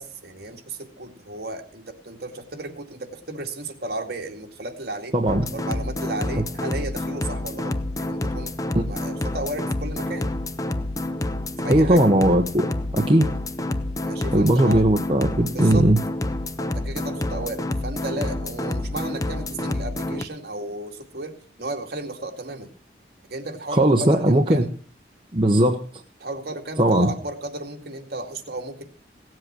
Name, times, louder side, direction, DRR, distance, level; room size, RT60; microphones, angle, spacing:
voice 1, 0.0-5.2 5.5-8.6 8.9-10.3 11.6-12.1 14.0-14.9 15.5-15.9 16.6-22.7 23.3-24.7 26.2-28.8, right 2 dB, 60° right, 3 dB, 2.2 m, -34 dB
voice 2, 5.1-5.5 11.7-12.7 12.9-13.3 14.3-16.0 23.7-24.6 25.3-25.8 26.8-27.1, right 1 dB, 30° right, 3 dB, 0.9 m, -18 dB
sound 1, 5.3-20.2, left 1 dB, 20° left, 0.6 m, -28 dB
17.0 x 7.7 x 6.1 m, 0.41 s
head